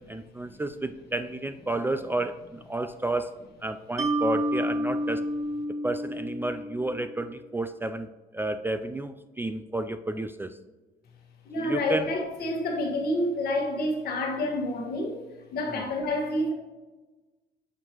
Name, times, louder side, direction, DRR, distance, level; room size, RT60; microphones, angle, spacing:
voice 1, 0.1-3.3 3.6-5.2 5.8-10.6 11.6-12.1 15.7-15.8, right 2 dB, 10° right, 9 dB, 0.3 m, -31 dB
Mallet percussion, 4.0-7.3, right 1 dB, 40° right, 0.9 m, -30 dB
voice 2, 11.4-15.2 15.5-16.5, left 1 dB, 65° left, 1 dB, 1.4 m, -28 dB
7.3 x 4.5 x 2.9 m, 1.2 s
supercardioid pair, 70°, 17 cm